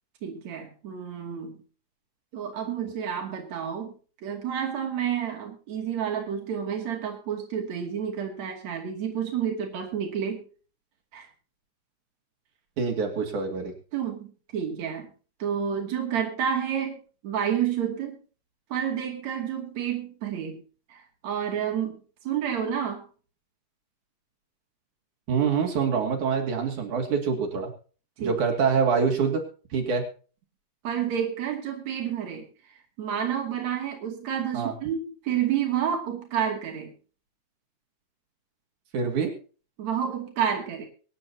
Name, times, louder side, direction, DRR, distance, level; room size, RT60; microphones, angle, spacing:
voice 1, 0.2-1.6 2.3-3.9 4.2-10.4 11.1-11.3 13.9-15.1 15.4-17.0 17.2-18.2 18.7-20.6 20.9-22.0 22.3-23.0 28.2-28.4 30.8-32.5 33.0-36.9 39.8-40.9, right 8 dB, 65° right, 1 dB, 3.7 m, -29 dB
voice 2, 12.8-13.7 25.3-27.7 28.2-29.4 29.7-30.1 34.5-34.7 38.9-39.3, right 5 dB, 85° right, 1 dB, 3.9 m, -25 dB
24.0 x 10.5 x 2.8 m, 0.38 s
omnidirectional pair, 3.4 m